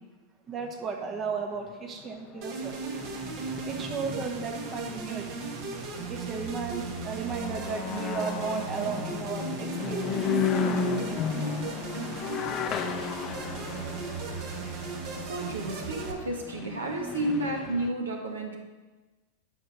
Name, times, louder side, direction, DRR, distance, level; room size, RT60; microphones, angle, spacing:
voice 1, 0.5-2.7 3.6-5.2 6.1-9.5 9.8-10.1, right 5 dB, 25° right, 3 dB, 1.1 m, -34 dB
sound 1, 0.6-0.7 1.1-17.9, left 6 dB, 30° left, 0.8 m, -35 dB
sound 2, 2.4-16.1, right 5 dB, 45° right, 1.4 m, -36 dB
voice 2, 13.7-14.2 15.2-18.6, right 1 dB, 70° right, 2 dB, 1.5 m, -32 dB
10.5 x 5.3 x 6.1 m, 1.2 s
figure-of-eight pair, 90°, 0 cm